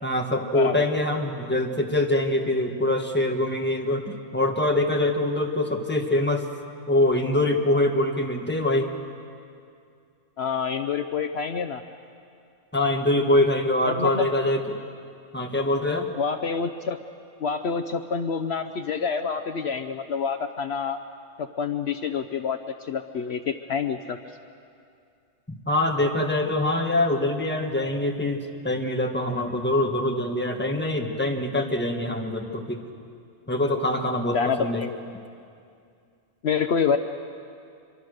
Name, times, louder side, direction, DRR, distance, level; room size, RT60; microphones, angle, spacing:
voice 1, 0.0-6.4 6.9-8.9 12.7-14.8 15.3-16.1 25.5-32.8 33.5-34.8, left 1 dB, 10° left, 2 dB, 1.7 m, -24 dB
voice 2, 0.5-0.8 10.4-11.8 13.9-14.3 16.2-17.0 17.4-21.0 21.4-24.2 34.3-34.9 36.4-37.0, left 6 dB, 65° left, 8 dB, 1.0 m, -27 dB
25.5 x 23.5 x 6.6 m, 2.4 s
omnidirectional pair, 1.2 m